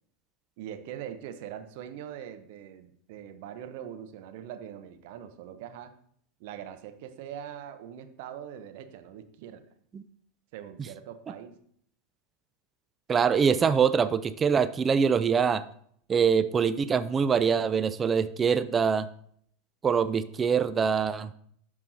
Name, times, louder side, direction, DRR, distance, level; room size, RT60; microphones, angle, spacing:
voice 1, 0.6-5.9 6.4-9.6 10.5-11.6, right 9 dB, 55° right, 9 dB, 0.8 m, -42 dB
voice 2, 13.1-15.6 16.1-19.1 19.8-21.3, right 6 dB, 25° right, 13 dB, 0.4 m, -24 dB
12.5 x 4.7 x 2.7 m, 0.64 s
figure-of-eight pair, 85°, 0 cm